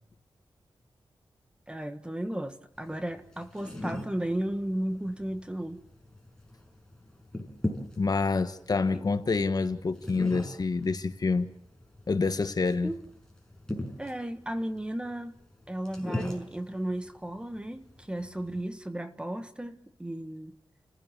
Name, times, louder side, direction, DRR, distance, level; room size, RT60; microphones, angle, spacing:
voice 1, 1.7-5.8 8.9-9.1 12.8-13.0 14.0-15.4 15.7-20.6, right 1 dB, 10° right, 1.6 m, -34 dB
sound 1, 2.8-18.6, left 1 dB, 10° left, 6.0 m, -41 dB
voice 2, 8.0-11.5 12.1-12.9, left 4 dB, 45° left, 1.4 m, -27 dB
30.0 x 16.0 x 7.3 m
wide cardioid pair, 120°, 9 cm